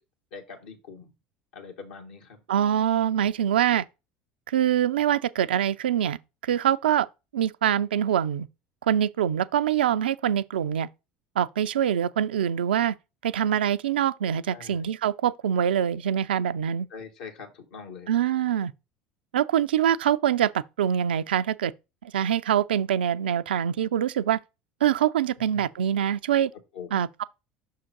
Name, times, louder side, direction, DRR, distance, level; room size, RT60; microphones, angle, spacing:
voice 1, 0.3-1.1 1.5-2.4 14.5-14.8 16.9-18.1 25.5-25.7 26.7-27.0, left 5 dB, 70° left, 1.6 m, -43 dB
voice 2, 2.5-3.8 4.5-6.2 6.4-7.1 7.3-8.5 8.8-10.9 11.4-13.0 13.2-16.9 18.1-18.7 19.3-21.7 22.0-24.4 24.8-26.5 26.9-27.2, right 10 dB, 80° right, 0.3 m, -24 dB
6.1 x 3.7 x 4.5 m
hypercardioid pair, 70°, 5 cm